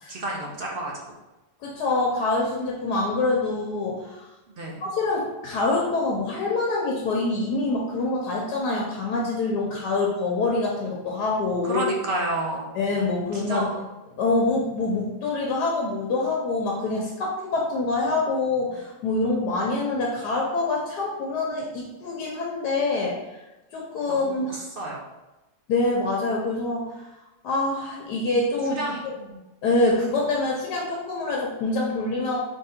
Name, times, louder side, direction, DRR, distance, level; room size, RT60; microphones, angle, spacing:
voice 1, 0.1-1.0 4.6-4.8 11.6-12.7 13.3-13.8 24.1-25.0 28.7-29.4, right 2 dB, 55° right, -2 dB, 0.6 m, -30 dB
voice 2, 1.6-4.2 4.8-11.8 12.7-13.7 14.2-23.4 23.7-24.6 25.7-27.1 27.4-29.1 29.6-32.4, left 2 dB, 85° left, -2 dB, 1.3 m, -25 dB
3.7 x 3.1 x 4.2 m, 1.0 s
omnidirectional pair, 1.7 m